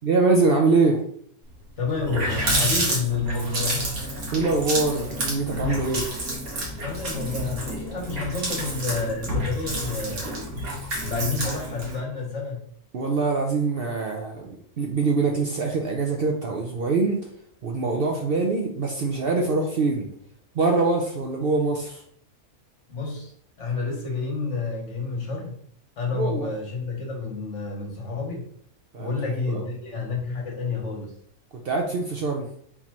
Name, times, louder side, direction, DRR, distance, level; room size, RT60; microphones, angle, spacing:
voice 1, 0.0-1.0 4.3-6.1 12.9-17.3 17.6-20.1 20.5-22.0 26.1-26.5 28.9-29.6 31.5-32.6, right 3 dB, 60° right, 2 dB, 0.6 m, -24 dB
Water tap faucet, 1.5-1.6 1.9-12.0, right 1 dB, 90° right, 1.8 m, -29 dB
voice 2, 1.8-4.0 6.8-10.4 11.0-12.6 22.9-23.3 23.6-25.6 26.0-28.5 29.0-31.1, left 4 dB, 55° left, -1 dB, 1.5 m, -29 dB
4.1 x 3.9 x 3.0 m, 0.62 s
omnidirectional pair, 1.5 m